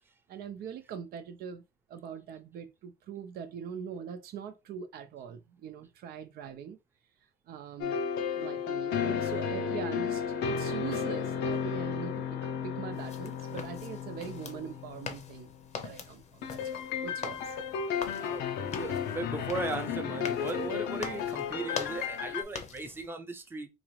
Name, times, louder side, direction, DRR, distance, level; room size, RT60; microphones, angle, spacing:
voice 1, 0.3-1.6 1.9-6.8 7.5-8.0 8.4-17.5, right 8 dB, 65° right, 0.6 m, -42 dB
sound 1, 7.8-15.6 16.4-22.4, left 7 dB, 80° left, 0.6 m, -33 dB
sound 2, 12.9-23.1, left 6 dB, 40° left, 0.7 m, -44 dB
voice 2, 18.2-23.7, right 2 dB, 15° right, 0.6 m, -37 dB
4.0 x 2.5 x 3.1 m
cardioid pair, 110°, 17 cm